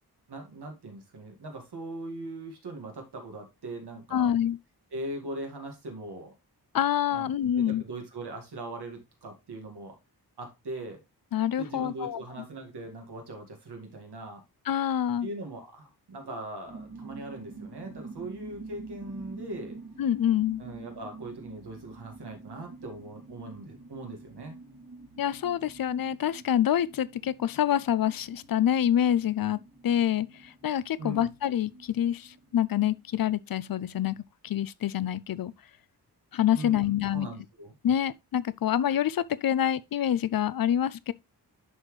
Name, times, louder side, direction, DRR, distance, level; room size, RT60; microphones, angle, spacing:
voice 1, 0.3-4.3 4.9-6.3 7.1-7.3 7.5-9.9 10.4-11.0 11.6-14.4 15.2-19.8 20.6-24.6 31.0-31.3 36.5-37.7, right 2 dB, 80° right, 2.1 m, -40 dB
voice 2, 4.1-4.6 6.7-7.8 11.3-12.2 14.7-15.3 20.0-20.6 25.2-29.6 29.8-34.2 34.4-35.5 36.3-37.3 37.8-41.1, left 10 dB, 60° left, 0.5 m, -26 dB
sound 1, 16.7-33.2, right 3 dB, 55° right, 2.4 m, -47 dB
11.0 x 4.2 x 3.2 m
wide cardioid pair, 95°, 40 cm